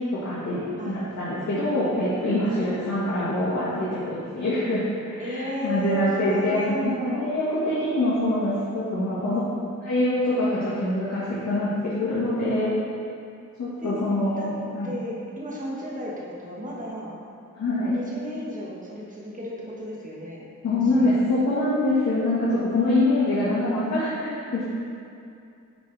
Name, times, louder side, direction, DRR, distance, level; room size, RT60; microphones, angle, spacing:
voice 1, 0.1-9.4 9.8-12.7 13.6-14.9 17.5-17.9 20.6-24.7, left 1 dB, 65° left, -10 dB, 1.5 m, -25 dB
voice 2, 0.8-1.2 2.4-2.7 5.2-7.3 9.2-9.8 12.3-12.7 13.8-13.9 14.4-14.5 14.8-17.2 17.9-21.1, equal, 25° right, -4 dB, 1.3 m, -34 dB
10.5 x 3.8 x 3.3 m, 2.5 s
wide cardioid pair, 100°, 31 cm